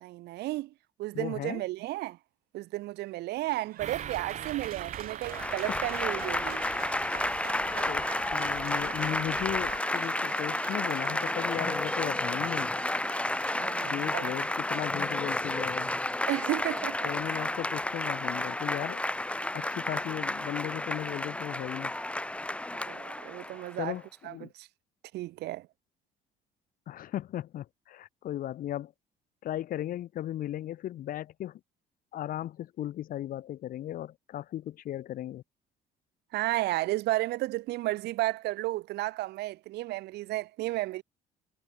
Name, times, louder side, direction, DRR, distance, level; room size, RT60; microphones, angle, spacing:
voice 1, 0.0-0.7 1.0-2.2 2.5-6.6 13.5-14.3 16.3-17.4 22.7-24.0 24.2-24.7 25.1-25.7 36.3-41.0, right 17 dB, 75° right, 0.8 m, -33 dB
voice 2, 1.1-1.6 7.7-12.7 13.8-15.9 17.0-19.0 19.5-21.9 23.8-24.5 26.9-28.9 29.4-31.6 32.1-35.4, left 12 dB, 55° left, 0.7 m, -36 dB
Applause, 3.4-18.1, right 12 dB, 60° right, 1.5 m, -46 dB
sound 1, 3.8-9.8, right 9 dB, 45° right, 1.0 m, -43 dB
Applause / Crowd, 5.2-23.8, left 1 dB, 5° left, 1.2 m, -31 dB
cardioid pair, 110°, 17 cm